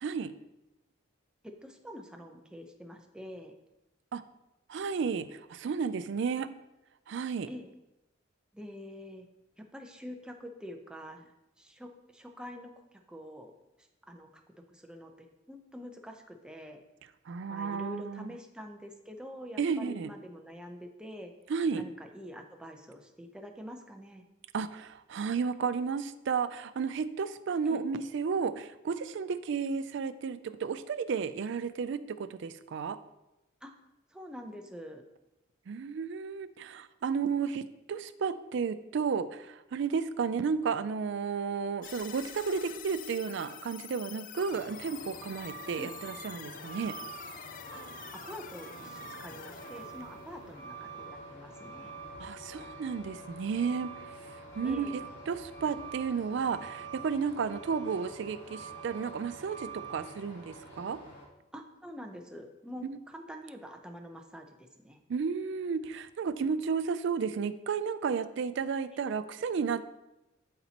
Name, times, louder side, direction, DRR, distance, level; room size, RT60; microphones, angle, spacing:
voice 1, 0.0-0.3 4.1-4.2 4.7-6.5 7.1-7.5 17.3-18.3 19.6-20.1 21.5-21.8 24.5-33.0 35.7-47.0 52.2-55.0 55.3-61.0 62.8-63.0 65.1-69.9, right 5 dB, 60° right, 12 dB, 0.4 m, -33 dB
voice 2, 1.4-3.5 7.5-7.7 8.5-9.3 9.6-11.3 11.6-12.7 13.1-13.5 14.1-14.4 14.7-16.8 17.5-21.3 21.7-24.2 27.7-27.8 33.6-33.7 34.1-35.0 45.8-45.9 47.7-47.8 48.1-51.9 54.6-55.0 61.5-65.0 68.9-69.1, equal, 5° right, 3 dB, 0.6 m, -46 dB
sound 1, 41.8-51.1, left 9 dB, 40° left, 0.3 m, -47 dB
Truck, 44.5-61.2, right 4 dB, 60° left, 2.4 m, -46 dB
12.0 x 4.2 x 2.9 m, 0.96 s
head